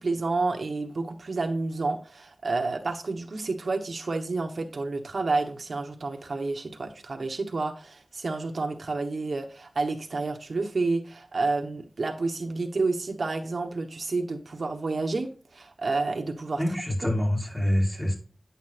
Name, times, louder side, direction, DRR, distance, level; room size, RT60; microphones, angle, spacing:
voice 1, 0.0-16.6, right 3 dB, 75° right, 1.0 m, -30 dB
voice 2, 16.6-18.2, left 1 dB, 5° left, 4.5 m, -26 dB
9.9 x 8.1 x 2.5 m
wide cardioid pair, 55°, 0 cm